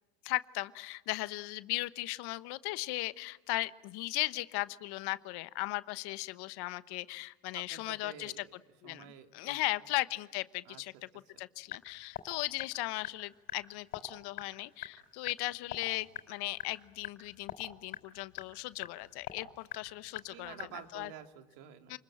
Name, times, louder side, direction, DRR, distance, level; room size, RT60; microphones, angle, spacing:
voice 1, 0.2-8.4 8.8-10.9 11.4-20.5 20.9-21.1 21.9-22.0, left 20 dB, 60° left, 15 dB, 1.2 m, -37 dB
voice 2, 7.5-8.5 8.8-9.6 10.6-10.8 20.3-22.0, right 10 dB, 70° right, 6 dB, 2.7 m, -50 dB
sound 1, 11.6-21.1, left 11 dB, 85° left, 4.6 m, -47 dB
29.5 x 21.0 x 8.8 m, 1.2 s
supercardioid pair, 95°, 45 cm